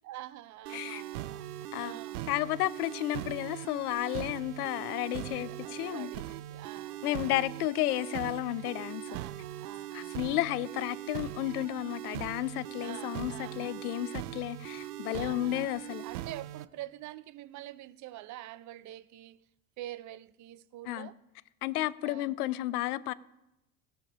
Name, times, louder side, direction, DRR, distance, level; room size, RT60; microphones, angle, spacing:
voice 1, 0.0-2.2 5.3-7.4 9.1-10.3 12.8-13.9 15.1-15.7 16.0-19.4 19.8-21.2 22.0-22.3, right 14 dB, 40° right, 0.6 m, -46 dB
voice 2, 0.7-1.0 1.7-2.0 2.3-6.1 7.0-9.0 9.9-16.0 20.9-21.1 21.6-23.1, left 16 dB, 75° left, 0.6 m, -32 dB
sound 1, 0.7-16.7, right 13 dB, 80° right, 0.6 m, -41 dB
16.0 x 6.5 x 5.4 m
hypercardioid pair, 75°, 45 cm